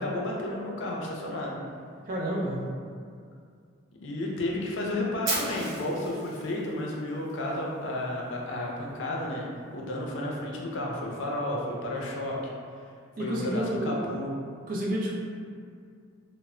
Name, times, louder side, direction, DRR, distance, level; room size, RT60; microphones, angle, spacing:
voice 1, 0.0-1.6 4.0-9.5 9.7-12.4 13.2-14.3, left 1 dB, 70° left, -2 dB, 0.4 m, -32 dB
voice 2, 2.1-2.6 13.2-14.0 14.7-15.1, right 1 dB, 45° right, -3 dB, 0.4 m, -29 dB
Fire, 5.2-7.3, right 1 dB, 75° right, 0.8 m, -34 dB
2.1 x 2.0 x 3.6 m, 2.2 s
head